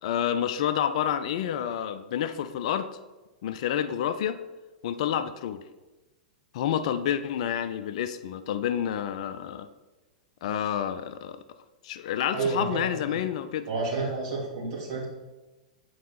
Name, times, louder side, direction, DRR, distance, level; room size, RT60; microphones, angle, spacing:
voice 1, 0.0-2.9 3.4-4.4 4.8-5.6 6.5-9.7 10.4-11.4 11.8-13.7, left 9 dB, 55° left, 11 dB, 0.4 m, -29 dB
voice 2, 12.3-12.9 13.7-15.1, right 3 dB, 50° right, -3 dB, 2.5 m, -30 dB
8.2 x 4.7 x 4.4 m, 1.1 s
figure-of-eight pair, 100°, 4 cm